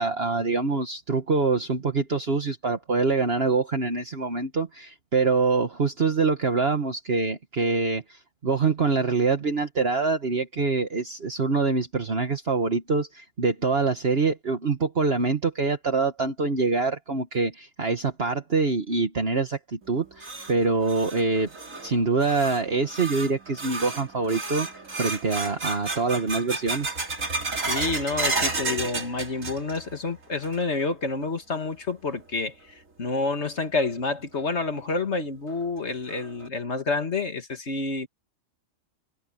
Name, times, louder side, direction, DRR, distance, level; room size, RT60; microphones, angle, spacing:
voice 1, 0.0-21.5 21.8-26.9, right 4 dB, 50° right, 1.7 m, -25 dB
sound 1, 19.8-30.0 30.2-30.8 31.2-31.3 32.1-32.2 33.8-33.9 34.3-34.4 34.9-35.0 35.5-35.6 36.1-36.5, right 3 dB, 80° right, 3.6 m, -32 dB
voice 2, 27.6-38.1, left 3 dB, 60° left, 2.2 m, -29 dB
omnidirectional pair, 1.3 m